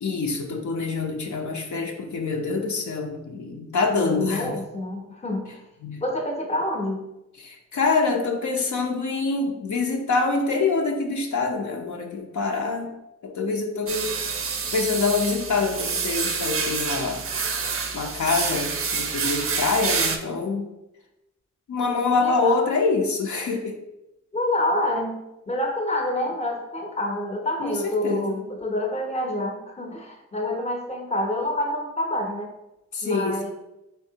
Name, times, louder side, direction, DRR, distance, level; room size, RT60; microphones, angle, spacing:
voice 1, 0.0-4.6 5.8-6.0 7.4-12.9 13.2-14.1 14.7-17.2 17.9-20.7 21.7-23.7 27.6-28.4 32.9-33.4, left 4 dB, 70° left, 1 dB, 0.6 m, -25 dB
voice 2, 3.9-5.6 6.0-7.0 17.4-17.8 19.2-19.4 22.2-22.6 24.3-32.5 33.0-33.5, left 1 dB, 20° left, 2 dB, 0.6 m, -28 dB
sound 1, 13.9-20.2, right 5 dB, 50° right, 0.4 m, -27 dB
3.5 x 3.1 x 2.7 m, 0.93 s
cardioid pair, 70°, 30 cm